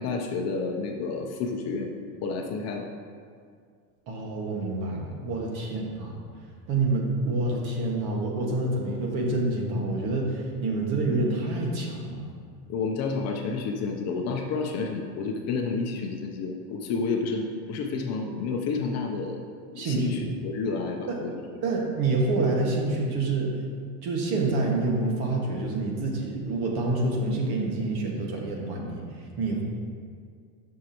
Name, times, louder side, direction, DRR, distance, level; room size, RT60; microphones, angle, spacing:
voice 1, 0.0-1.9 2.2-2.9 5.7-5.9 12.7-19.4 19.7-21.4, left 4 dB, 35° left, 2 dB, 0.7 m, -30 dB
voice 2, 4.1-6.1 6.7-12.3 19.8-20.2 21.1-21.2 21.6-23.5 24.0-29.0 29.4-29.6, right 2 dB, 50° right, -1 dB, 1.8 m, -27 dB
11.0 x 6.4 x 3.0 m, 2.1 s
supercardioid pair, 140°, 46 cm